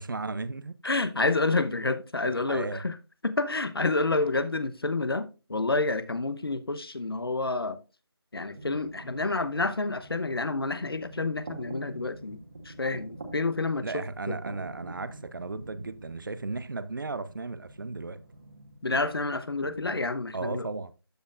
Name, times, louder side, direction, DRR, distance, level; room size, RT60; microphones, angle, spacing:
voice 1, 0.0-0.7 2.3-2.8 13.8-18.2 20.3-20.9, right 3 dB, 55° right, 0.7 m, -35 dB
voice 2, 0.8-2.9 3.2-5.2 5.5-7.8 8.3-12.4 12.6-14.4 18.8-20.7, left 3 dB, 65° left, 1.0 m, -29 dB
sound 1, 8.5-20.0, right 2 dB, 35° right, 1.5 m, -46 dB
13.0 x 5.2 x 2.5 m
figure-of-eight pair, 165°, 13 cm